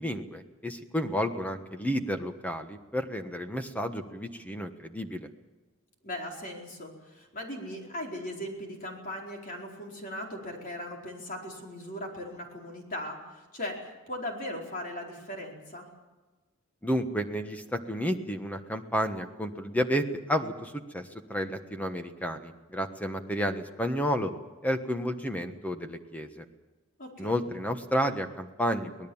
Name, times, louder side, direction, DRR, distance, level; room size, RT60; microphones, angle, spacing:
voice 1, 0.0-5.3 16.8-24.3 24.6-26.4 27.2-29.1, equal, 5° left, 6 dB, 1.3 m, -31 dB
voice 2, 6.0-15.9 27.0-27.4, left 1 dB, 40° left, 0 dB, 4.5 m, -38 dB
25.0 x 18.5 x 7.2 m, 1.2 s
head